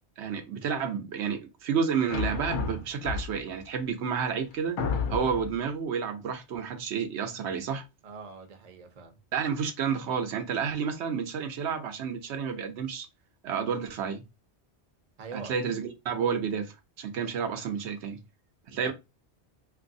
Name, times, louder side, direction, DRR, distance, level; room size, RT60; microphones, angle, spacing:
voice 1, 0.2-4.8 5.1-7.8 9.3-13.1 13.4-14.2 15.3-18.2 18.7-18.9, right 6 dB, 85° right, 0.9 m, -30 dB
sound 1, 2.1-3.6 4.2-4.3 4.8-5.6, left 5 dB, 55° left, 0.6 m, -31 dB
voice 2, 8.0-9.2 15.2-15.5 18.7-18.9, right 4 dB, 45° right, 0.6 m, -44 dB
3.0 x 2.5 x 2.6 m
omnidirectional pair, 1.1 m